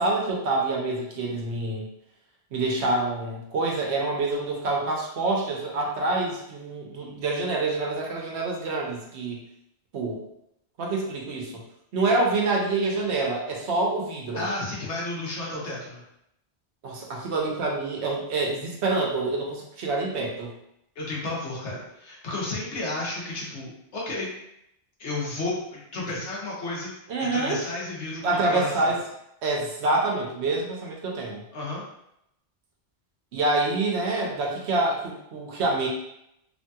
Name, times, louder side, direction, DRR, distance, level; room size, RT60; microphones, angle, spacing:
voice 1, 0.0-1.9 2.5-9.4 9.9-10.2 10.8-11.6 11.9-14.4 16.8-20.5 27.1-27.6 28.2-29.0 29.4-31.4 33.3-35.9, right 2 dB, 80° right, -1 dB, 1.0 m, -26 dB
voice 2, 14.3-16.0 21.0-24.3 25.0-26.9 27.2-28.9 31.5-31.8, left 2 dB, 90° left, -4 dB, 1.2 m, -32 dB
3.0 x 2.7 x 2.3 m, 0.80 s
omnidirectional pair, 1.1 m